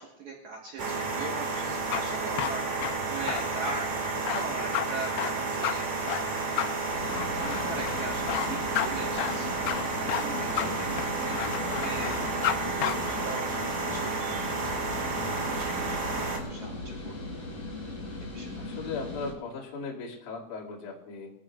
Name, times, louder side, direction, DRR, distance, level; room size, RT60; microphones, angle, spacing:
voice 1, 0.0-2.6 3.1-6.2 6.5-6.7 7.3-9.5 9.8-12.1 12.4-14.1 14.6-14.7 15.5-16.0 16.4-17.1 18.3-18.5, right 3 dB, 75° right, -2 dB, 1.7 m, -40 dB
sound 1, 0.8-16.4, right 3 dB, 50° right, 2.2 m, -31 dB
sound 2, 1.7-12.6 12.8-12.9, left 11 dB, 85° left, 2.5 m, -32 dB
sound 3, 6.9-19.3, left 2 dB, 30° left, 6.2 m, -38 dB
voice 2, 10.4-10.8 18.6-21.3, left 4 dB, 45° left, -5 dB, 3.2 m, -38 dB
22.0 x 15.0 x 2.4 m, 0.90 s
omnidirectional pair, 5.8 m